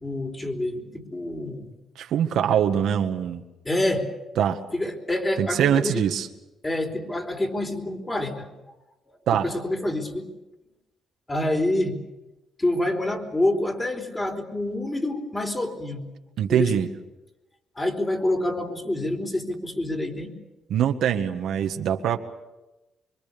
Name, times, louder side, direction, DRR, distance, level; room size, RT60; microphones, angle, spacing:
voice 1, 0.0-1.7 3.6-4.1 4.7-6.0 6.6-8.5 9.1-10.3 11.3-11.9 12.6-16.0 16.5-16.7 17.8-20.3, left 1 dB, 20° left, 3 dB, 4.4 m, -27 dB
voice 2, 2.0-3.4 4.4-4.6 5.4-6.3 9.3-9.5 16.4-16.9 20.7-22.2, right 9 dB, 75° right, 5 dB, 1.7 m, -23 dB
25.5 x 23.5 x 7.1 m, 1.0 s
cardioid pair, 90°, 0 cm